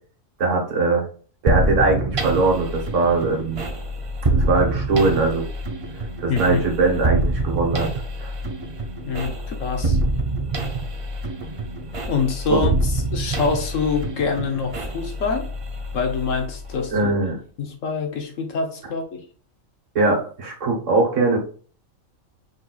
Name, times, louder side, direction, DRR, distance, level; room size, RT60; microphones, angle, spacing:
voice 1, 0.4-1.1 1.4-3.6 4.3-5.5 6.2-7.9 8.2-8.3 12.5-12.6 16.9-17.4 19.9-21.4, right 3 dB, 65° right, 1.7 m, -21 dB
sound 1, 1.5-17.1, right 2 dB, 40° right, 0.5 m, -26 dB
voice 2, 6.3-6.6 9.1-10.0 12.1-12.7 13.1-15.5 15.9-17.1 17.6-19.2, left 5 dB, 70° left, 1.3 m, -25 dB
5.1 x 4.1 x 2.4 m
omnidirectional pair, 1.4 m